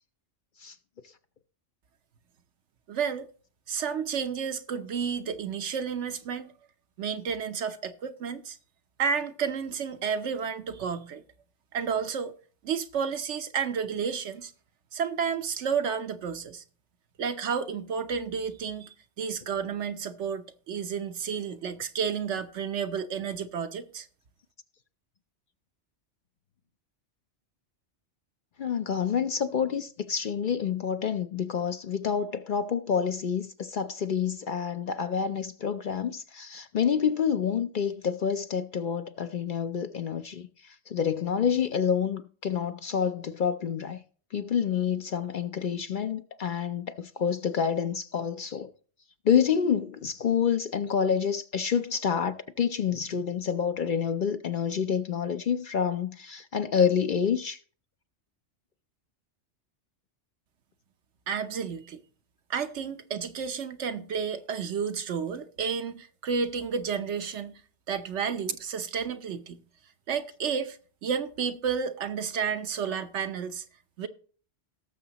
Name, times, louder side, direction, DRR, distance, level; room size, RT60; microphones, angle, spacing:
voice 1, 2.9-3.3 3.7-6.5 7.0-8.6 9.0-11.2 11.7-12.3 12.6-14.5 14.9-16.6 17.2-24.1 61.3-62.0 62.5-67.5 67.9-69.6 70.1-73.6 74.0-74.1, right 6 dB, 75° right, 1.1 m, -31 dB
voice 2, 28.6-44.0 44.3-48.7 49.2-57.6, left 7 dB, 55° left, 0.7 m, -28 dB
18.0 x 7.0 x 2.9 m
omnidirectional pair, 1.2 m